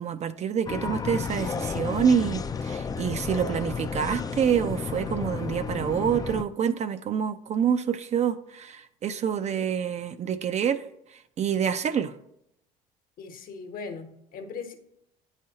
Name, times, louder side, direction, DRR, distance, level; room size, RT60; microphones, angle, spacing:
voice 1, 0.0-10.8 11.4-12.1, right 7 dB, 40° right, 0.5 m, -27 dB
sound 1, 0.7-6.4, left 5 dB, 20° left, 0.4 m, -32 dB
voice 2, 13.2-14.7, left 5 dB, 55° left, 1.1 m, -39 dB
8.6 x 4.9 x 2.8 m
hypercardioid pair, 70°, 17 cm